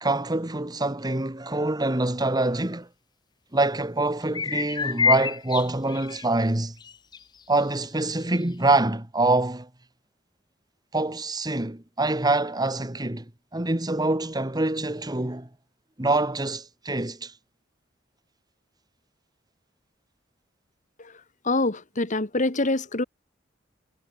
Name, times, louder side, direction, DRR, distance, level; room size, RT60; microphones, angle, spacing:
voice 1, 0.0-2.9 3.5-6.7 7.5-9.7 10.9-13.2 13.5-15.5 16.0-17.3, right 2 dB, 20° right, 1.7 m, -25 dB
sound 1, 4.2-6.3 6.8-7.2 7.5-7.6 8.4-8.5, left 6 dB, 25° left, 0.3 m, -27 dB
voice 2, 21.4-23.0, left 2 dB, 40° left, 2.0 m, -25 dB
head